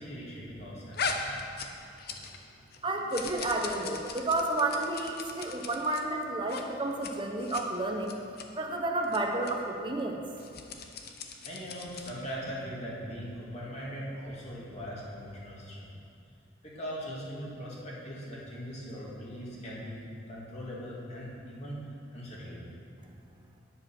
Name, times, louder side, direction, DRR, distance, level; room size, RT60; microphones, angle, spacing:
voice 1, 0.0-1.4 11.4-15.9 16.6-20.0 20.3-21.8 22.1-22.6, equal, 35° left, -6 dB, 2.3 m, -40 dB
sound 1, 0.9-2.5 2.7-6.0 6.4-6.6 6.9-7.1 7.4-7.6 8.0-8.5 9.0-9.2 9.4-9.5 10.3-12.2, left 4 dB, 55° left, 0.8 m, -38 dB
voice 2, 2.8-8.1 8.6-10.2, right 2 dB, 25° right, 2 dB, 1.0 m, -31 dB
10.5 x 7.8 x 6.2 m, 2.5 s
head